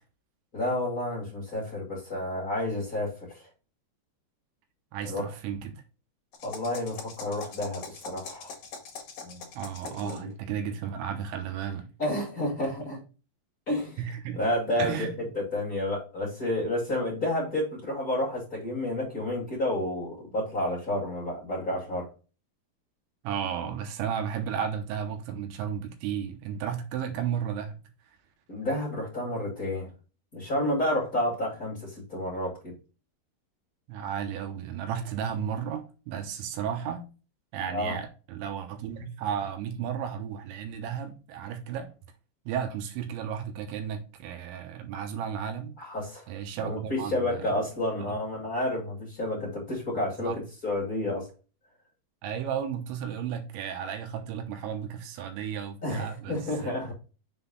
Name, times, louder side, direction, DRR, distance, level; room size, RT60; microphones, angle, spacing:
voice 1, 0.5-3.4 5.0-5.2 6.4-8.5 9.2-9.4 9.8-10.3 12.0-13.0 13.7-14.0 14.3-15.1 15.3-22.1 28.5-29.9 30.3-32.7 37.7-38.0 45.8-46.3 46.6-51.3 55.8-56.9, left 1 dB, 30° left, 1.8 m, -30 dB
voice 2, 4.9-5.8 9.6-11.9 14.0-14.4 14.8-15.3 23.2-27.8 33.9-37.1 37.5-41.9 42.5-45.8 46.3-47.5 50.2-50.4 52.2-56.7, right 8 dB, 80° right, 3.3 m, -33 dB
sound 1, 6.3-10.3, left 5 dB, 45° left, 2.2 m, -43 dB
6.8 x 3.9 x 3.9 m
omnidirectional pair, 5.2 m